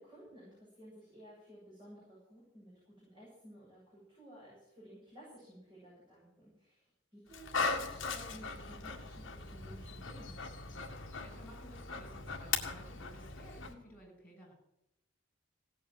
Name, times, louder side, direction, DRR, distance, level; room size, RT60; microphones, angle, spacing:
voice 1, 0.0-10.3, right 1 dB, 20° right, -7 dB, 7.4 m, -55 dB
Dog, 7.3-13.7, left 4 dB, 60° left, 2.0 m, -39 dB
voice 2, 10.7-14.5, equal, 5° left, -4 dB, 7.6 m, -56 dB
17.5 x 8.8 x 7.7 m, 0.82 s
head